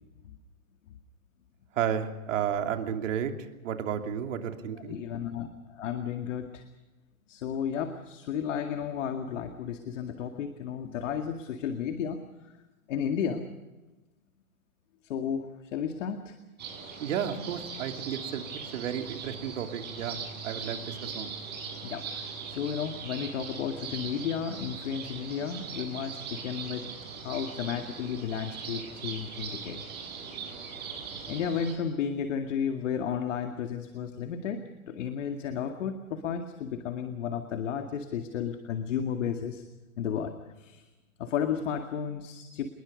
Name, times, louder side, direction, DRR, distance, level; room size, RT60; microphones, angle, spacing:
voice 1, 1.7-3.3 3.6-5.0 17.0-18.4 18.7-20.2 20.4-20.8 21.1-21.3, right 9 dB, 60° right, 5 dB, 3.0 m, -32 dB
voice 2, 4.9-6.6 7.3-12.2 12.9-13.4 15.1-16.3 21.8-26.9 27.2-29.8 31.3-39.6 40.0-40.9 41.2-42.7, left 7 dB, 55° left, 6 dB, 2.2 m, -33 dB
sound 1, 16.6-31.7, right 6 dB, 25° right, 7.4 m, -40 dB
27.5 x 21.0 x 5.2 m, 1.1 s
hypercardioid pair, 135°, 43 cm